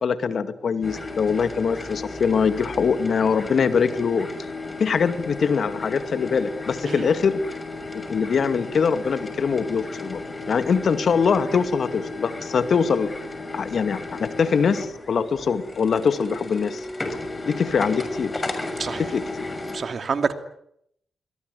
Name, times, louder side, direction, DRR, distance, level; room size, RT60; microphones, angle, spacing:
voice 1, 0.0-4.3 4.8-7.4 8.1-10.2 10.5-13.1 13.5-16.8 17.5-18.3 19.0-19.2, left 6 dB, 65° left, 2.3 m, -23 dB
sound 1, 0.8-19.8, left 2 dB, 30° left, 6.4 m, -34 dB
voice 2, 19.7-20.3, right 5 dB, 60° right, 2.6 m, -27 dB
22.0 x 21.5 x 9.7 m
supercardioid pair, 40°, 0 cm